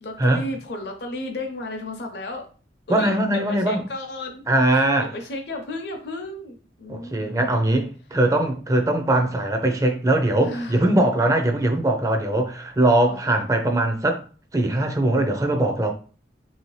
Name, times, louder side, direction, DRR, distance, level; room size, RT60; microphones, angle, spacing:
voice 1, 0.0-2.5 2.9-4.4 4.7-7.5 10.4-10.9 13.0-13.2, left 1 dB, 65° left, 0.7 m, -33 dB
voice 2, 2.9-3.8 4.5-5.1 6.9-14.2 14.5-15.9, right 1 dB, 20° right, 0.4 m, -21 dB
3.3 x 2.8 x 3.1 m
head